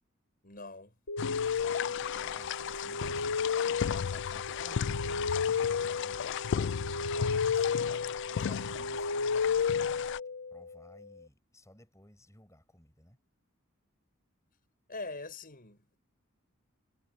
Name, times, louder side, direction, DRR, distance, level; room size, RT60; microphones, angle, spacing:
voice 1, 0.4-0.9 14.9-16.0, left 3 dB, 45° left, 6.9 m, -43 dB
sound 1, 1.1-10.8, left 5 dB, 85° left, 1.1 m, -33 dB
sound 2, 1.2-10.2, left 8 dB, 60° left, 0.3 m, -35 dB
voice 2, 1.5-6.2 7.0-10.1 10.5-13.2, left 1 dB, 15° left, 6.4 m, -56 dB
head